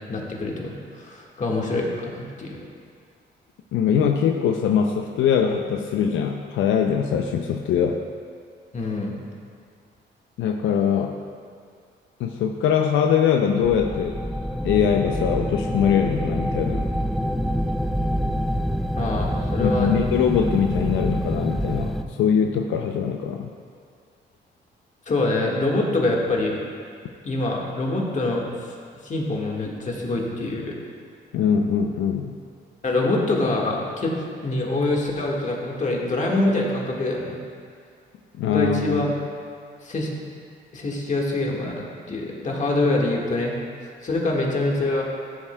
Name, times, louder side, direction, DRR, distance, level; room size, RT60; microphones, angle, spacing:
voice 1, 0.1-2.6 8.7-9.1 19.0-19.9 25.1-26.6 27.2-28.4 29.0-30.7 32.8-34.1 34.4-37.4 38.5-39.1 39.8-40.1 40.7-43.6 44.0-45.0, left 2 dB, 40° left, -2 dB, 1.6 m, -25 dB
voice 2, 3.7-8.0 10.4-11.2 12.2-14.2 14.6-16.9 19.6-23.5 31.3-32.3 38.4-39.1, left 7 dB, 80° left, 4 dB, 0.5 m, -22 dB
sound 1, 13.6-22.0, equal, ahead, 0.4 m, -26 dB
14.5 x 7.3 x 2.2 m, 2.2 s
cardioid pair, 90°, 20 cm